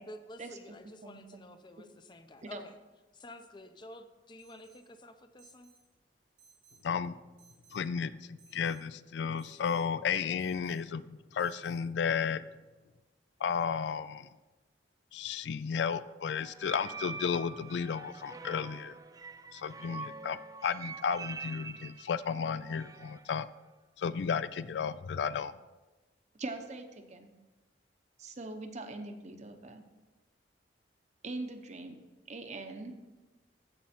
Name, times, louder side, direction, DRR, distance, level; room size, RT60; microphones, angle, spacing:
voice 1, 0.1-2.7 3.1-5.7, left 1 dB, 25° left, 8 dB, 0.6 m, -50 dB
voice 2, 1.0-1.4 2.4-2.6 26.4-27.3 28.2-29.8 31.2-32.0 32.3-33.0, right 2 dB, 40° right, 6 dB, 0.9 m, -42 dB
Alarm, 4.4-4.9 5.4-5.8 6.4-6.9 7.4-7.9 8.4-8.9 9.4-9.8 10.4-10.8 11.4-11.8, right 5 dB, 90° right, 1.8 m, -62 dB
voice 3, 6.8-7.2 7.7-12.4 13.4-14.3 15.1-19.0 19.5-23.5 24.0-25.5, left 6 dB, 70° left, 15 dB, 0.3 m, -33 dB
sound 1, 16.4-23.3, right 4 dB, 20° right, 0.4 m, -45 dB
15.0 x 5.4 x 4.3 m, 1.2 s
head